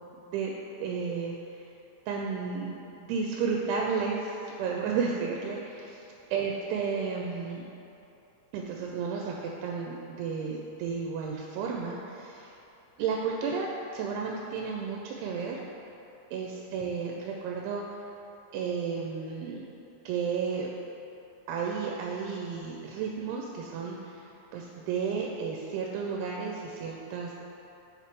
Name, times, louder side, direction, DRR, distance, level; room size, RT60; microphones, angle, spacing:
voice 1, 0.8-1.4 2.1-6.0 6.3-7.6 8.5-12.5 13.0-13.7 13.9-15.6 16.3-18.0 18.5-19.7 20.1-20.7 21.5-24.2 24.5-27.3, right 5 dB, 90° right, -1 dB, 2.6 m, -32 dB
6.9 x 3.3 x 5.1 m, 3.0 s
omnidirectional pair, 4.6 m